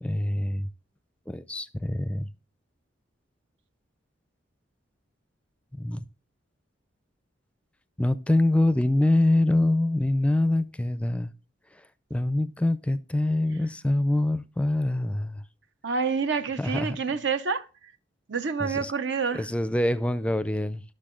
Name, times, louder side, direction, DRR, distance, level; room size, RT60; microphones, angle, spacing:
voice 1, 0.0-0.7 1.3-2.3 5.8-6.0 8.0-11.3 12.1-15.4 16.6-17.0 18.6-18.9 19.3-20.8, left 1 dB, 5° left, 0.4 m, -25 dB
voice 2, 15.8-17.7 18.3-19.5, right 5 dB, 65° right, 0.7 m, -28 dB
12.0 x 6.6 x 3.8 m
head